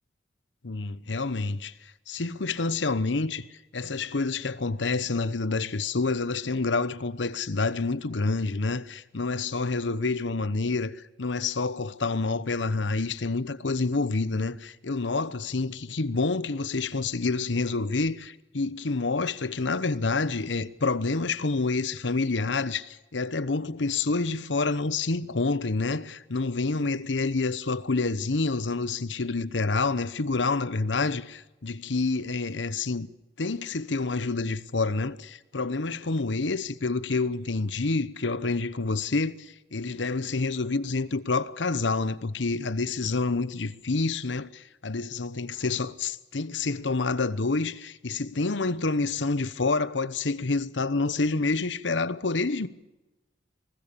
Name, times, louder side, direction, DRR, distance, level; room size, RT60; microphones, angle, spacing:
voice 1, 0.6-3.4 3.7-33.1 33.4-52.7, left 3 dB, 80° left, 1.0 m, -28 dB
23.5 x 19.5 x 6.8 m
head